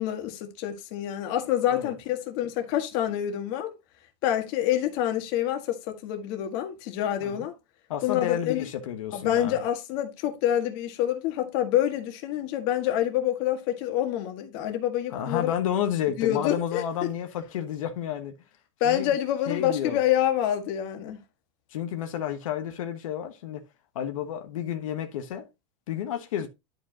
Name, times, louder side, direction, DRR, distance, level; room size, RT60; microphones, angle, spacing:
voice 1, 0.0-3.7 4.2-7.5 8.0-8.6 9.1-15.5 16.2-17.1 18.8-21.2, left 11 dB, 50° left, 1.7 m, -27 dB
voice 2, 7.9-9.6 15.1-18.4 18.8-19.1 19.5-20.0 21.7-23.6 23.9-25.5 25.9-26.5, left 10 dB, 90° left, 1.2 m, -31 dB
11.0 x 5.1 x 2.9 m
supercardioid pair, 150°, 17 cm